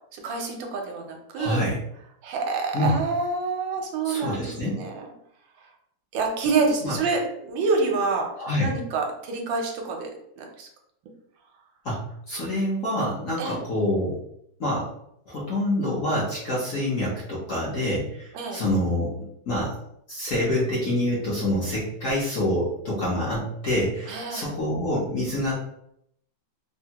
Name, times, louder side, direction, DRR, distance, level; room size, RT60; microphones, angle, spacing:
voice 1, 0.1-1.6 2.2-5.1 6.1-8.3 8.6-10.7 13.4-13.6 18.3-18.6 24.1-24.5, right 4 dB, 80° right, 2 dB, 1.3 m, -27 dB
voice 2, 1.4-1.8 2.7-3.0 4.0-4.8 6.8-7.0 8.4-8.7 11.8-14.2 14.6-14.9 15.3-19.1 19.5-19.8 20.1-25.6, left 1 dB, 60° left, -6 dB, 0.9 m, -26 dB
3.3 x 2.1 x 2.8 m, 0.75 s
omnidirectional pair, 2.1 m